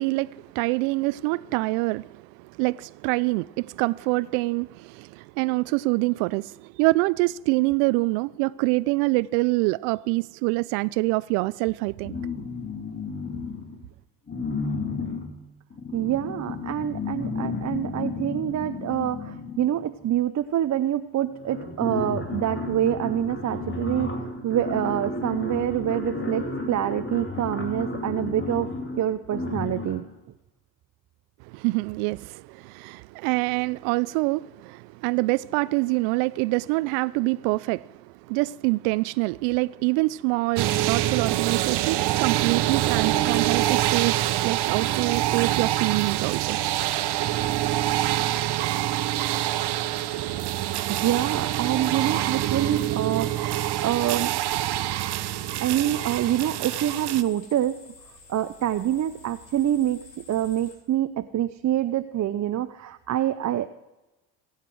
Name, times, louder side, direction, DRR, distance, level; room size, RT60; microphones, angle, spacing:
voice 1, 0.0-12.1 31.5-38.0 38.3-46.6, right 23 dB, 70° right, 0.5 m, -25 dB
sound 1, 12.0-13.8 14.3-19.9 20.9-21.0 21.2-30.1, left 3 dB, 25° left, 2.6 m, -32 dB
voice 2, 15.9-24.1 24.4-28.7 29.0-30.1 50.9-54.3 55.6-57.8 58.3-63.7, right 11 dB, 35° right, 0.6 m, -26 dB
sound 2, 40.6-57.2, right 14 dB, 55° right, 0.9 m, -25 dB
sound 3, 46.7-60.7, left 3 dB, 90° left, 3.4 m, -50 dB
24.5 x 8.2 x 4.7 m
hypercardioid pair, 70°, 49 cm